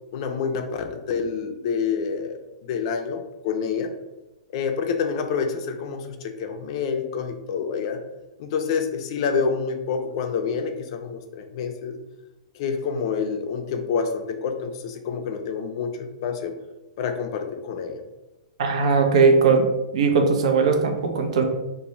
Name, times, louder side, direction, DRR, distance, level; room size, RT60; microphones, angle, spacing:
voice 1, 0.1-2.4 2.7-3.9 4.5-8.0 8.4-12.0 12.5-16.5 17.0-18.0, left 6 dB, 55° left, 6 dB, 0.4 m, -27 dB
voice 2, 18.6-19.7 19.9-21.4, right 4 dB, 70° right, 4 dB, 0.5 m, -19 dB
2.6 x 2.1 x 3.0 m, 1.0 s
hypercardioid pair, 130°, 3 cm